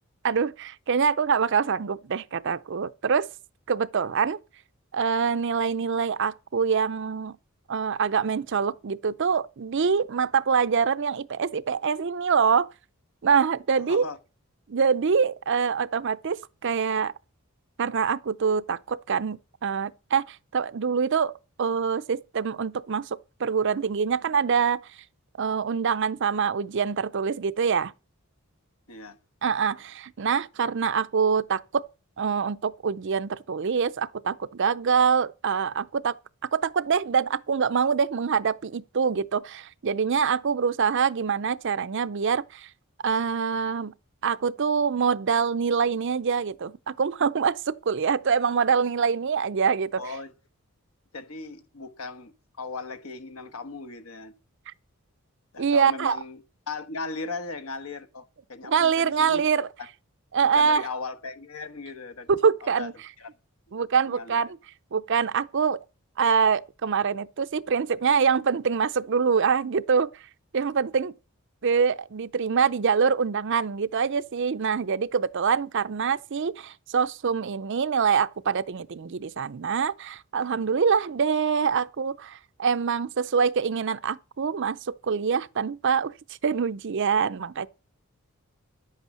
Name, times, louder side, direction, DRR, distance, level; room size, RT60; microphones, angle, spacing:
voice 1, 0.2-3.3 3.7-4.4 4.9-7.4 7.7-12.7 13.2-14.0 14.7-17.1 17.8-21.3 21.6-24.8 25.4-27.9 29.4-31.9 32.2-36.1 36.5-42.7 43.0-43.9 44.2-50.0 55.6-56.2 58.6-59.7 60.3-60.8 62.3-62.9 63.7-64.6 64.9-65.8 66.2-70.1 70.5-71.1 71.6-86.1 86.4-87.7, right 6 dB, 55° right, 0.5 m, -25 dB
voice 2, 13.8-14.2 28.9-29.2 50.0-50.3 51.1-54.3 55.5-59.5 59.8-59.9 60.4-62.3 62.6-62.9 63.2-63.3 63.7-64.5, left 3 dB, 70° left, 1.2 m, -38 dB
10.5 x 8.2 x 6.4 m
head